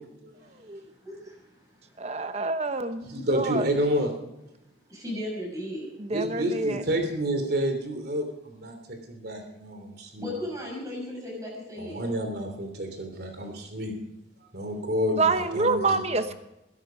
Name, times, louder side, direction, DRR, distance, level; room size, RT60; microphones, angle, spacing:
voice 1, 1.0-1.4 4.9-5.9 10.2-12.1, left 1 dB, 20° right, -1 dB, 6.3 m, -35 dB
voice 2, 2.0-3.7 6.0-6.8 15.2-16.3, right 3 dB, 35° right, 10 dB, 1.0 m, -27 dB
voice 3, 3.1-4.1 6.1-10.3 11.8-13.9 14.5-16.0, equal, 55° right, 5 dB, 3.1 m, -29 dB
20.5 x 11.0 x 5.2 m, 0.90 s
head